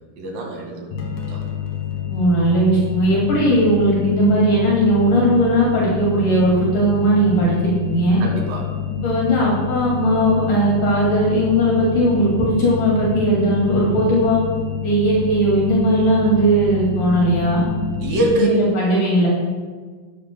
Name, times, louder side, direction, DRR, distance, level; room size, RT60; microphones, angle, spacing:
voice 1, 0.2-1.4 8.2-8.7 18.0-18.5, equal, 80° right, 0 dB, 3.6 m, -24 dB
sound 1, 0.9-18.4, left 8 dB, 90° left, 3.2 m, -28 dB
voice 2, 2.1-8.2 9.0-14.4 14.8-17.6 18.3-19.3, right 1 dB, 65° left, -5 dB, 3.8 m, -18 dB
13.5 x 12.5 x 2.2 m, 1.5 s
omnidirectional pair, 4.0 m